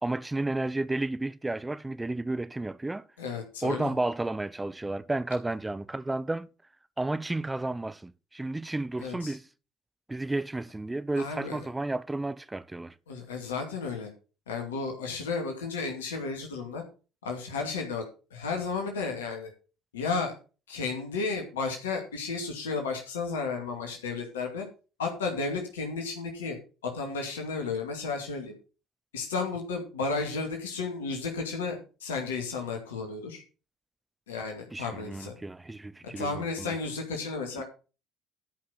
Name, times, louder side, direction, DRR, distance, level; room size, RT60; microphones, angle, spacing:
voice 1, 0.0-3.0 3.6-6.5 7.0-9.5 10.1-12.9 34.7-36.8 37.6-37.7, right 2 dB, 15° right, 0.9 m, -32 dB
voice 2, 3.2-3.9 9.0-9.3 11.2-11.6 13.1-14.1 14.5-16.8 17.2-18.1 18.3-19.5 19.9-20.3 20.7-24.6 25.0-26.6 26.8-28.5 29.1-33.4 34.3-35.3 36.2-37.6, left 4 dB, 80° left, 2.4 m, -33 dB
13.0 x 5.7 x 5.8 m
figure-of-eight pair, 55°, 0 cm